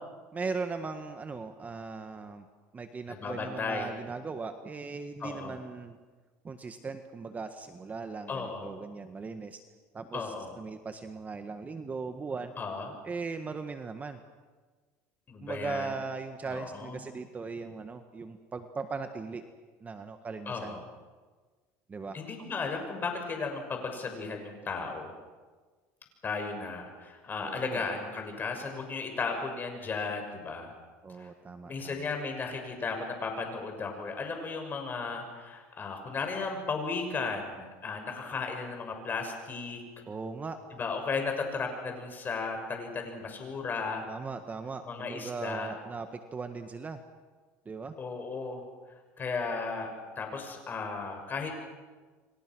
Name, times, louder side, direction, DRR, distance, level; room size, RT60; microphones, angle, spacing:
voice 1, 0.3-2.4 2.7-6.0 6.4-9.6 9.9-12.5 13.0-14.2 15.4-19.4 19.8-20.8 21.9-22.2 27.4-27.8 31.0-32.1 40.1-40.6 44.0-47.0 47.6-47.9, right 4 dB, 20° right, 8 dB, 1.6 m, -38 dB
voice 2, 3.1-3.9 5.2-5.6 8.3-8.7 10.1-10.5 12.6-12.9 15.3-15.9 16.4-17.0 20.5-20.8 22.1-25.1 26.2-30.7 31.2-31.3 31.6-39.8 40.7-44.1 44.8-45.7 48.0-48.6 49.2-49.9 50.2-51.5, left 4 dB, 30° left, 4 dB, 6.6 m, -35 dB
29.5 x 24.5 x 6.3 m, 1.4 s
supercardioid pair, 115°, 7 cm